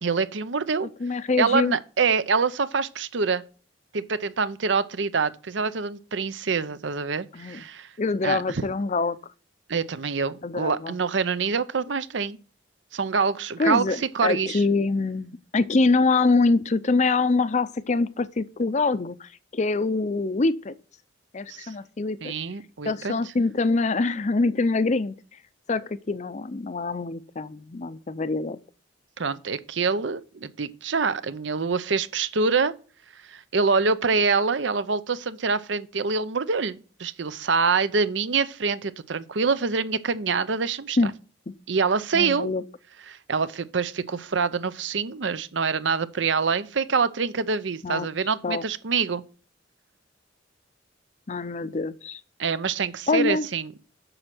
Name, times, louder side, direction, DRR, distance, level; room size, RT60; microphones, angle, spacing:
voice 1, 0.0-0.9 1.4-3.4 3.9-7.9 8.2-8.6 9.7-12.4 12.9-14.6 21.5-21.7 22.2-23.1 29.2-32.7 33.2-41.0 41.7-42.5 43.1-49.2 52.4-53.7, right 5 dB, 75° right, 0.7 m, -25 dB
voice 2, 1.0-1.8 7.3-7.6 8.0-9.2 10.4-10.9 13.6-20.7 21.3-22.3 22.9-25.2 25.7-28.6 41.0-41.1 41.5-41.6 42.1-42.6 47.8-48.1 48.4-48.6 51.3-52.2 53.1-53.5, left 3 dB, 40° left, 0.5 m, -24 dB
7.8 x 6.4 x 6.0 m
head